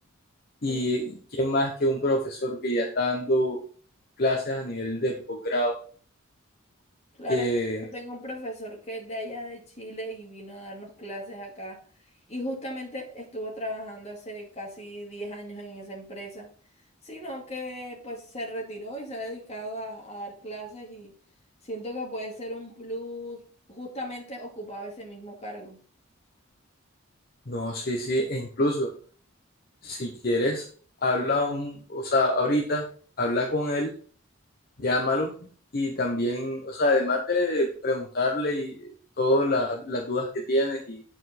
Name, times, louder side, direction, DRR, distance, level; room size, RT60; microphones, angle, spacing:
voice 1, 0.6-3.6 4.2-5.8 7.3-7.9 27.5-28.9 29.8-30.6 31.0-32.8 33.2-33.9 34.8-35.3 35.7-41.0, left 1 dB, 45° left, 2 dB, 1.0 m, -26 dB
voice 2, 7.9-11.8 12.3-16.5 17.0-21.1 21.6-23.4 23.7-25.8, equal, 30° left, -2 dB, 2.4 m, -37 dB
8.6 x 4.5 x 4.3 m, 0.43 s
head